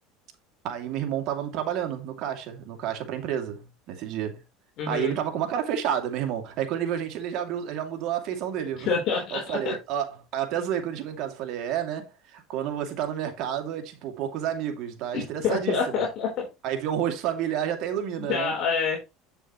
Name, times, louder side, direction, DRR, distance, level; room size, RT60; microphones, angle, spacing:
voice 1, 0.6-4.4 4.9-8.9 9.3-16.0 16.6-18.5, right 9 dB, 55° right, 2.5 m, -30 dB
voice 2, 4.8-5.2 8.8-9.7 15.1-16.5 18.2-19.1, left 5 dB, 50° left, 4.0 m, -27 dB
8.8 x 6.9 x 3.1 m
supercardioid pair, 120°, 0 cm